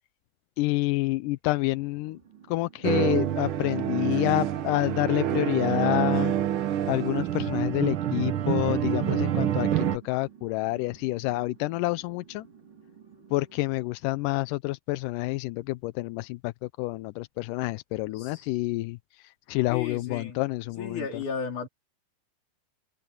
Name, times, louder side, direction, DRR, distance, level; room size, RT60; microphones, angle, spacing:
voice 1, 0.6-2.2 2.5-6.3 6.9-12.5 13.3-21.2, left 19 dB, 85° left, 2.1 m, -28 dB
sound 1, 1.7-13.9, right 8 dB, 35° right, 5.7 m, -53 dB
sound 2, 2.8-10.0, right 11 dB, 80° right, 1.2 m, -27 dB
voice 2, 18.2-18.5 19.7-20.4 20.8-21.7, left 5 dB, 65° left, 5.4 m, -34 dB
open air
omnidirectional pair, 3.8 m